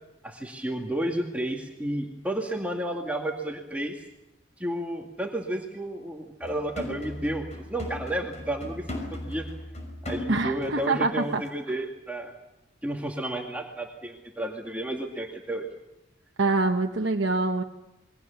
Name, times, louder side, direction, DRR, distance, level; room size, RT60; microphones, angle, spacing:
voice 1, 0.2-4.0 4.6-9.5 10.0-12.3 12.8-15.7, right 1 dB, 10° right, 0 dB, 2.1 m, -32 dB
sound 1, 6.4-11.0 11.3-11.5, left 1 dB, 35° left, 5.9 m, -38 dB
voice 2, 10.3-11.4 16.4-17.6, right 3 dB, 65° right, 3 dB, 1.2 m, -25 dB
28.0 x 22.5 x 7.1 m, 0.92 s
head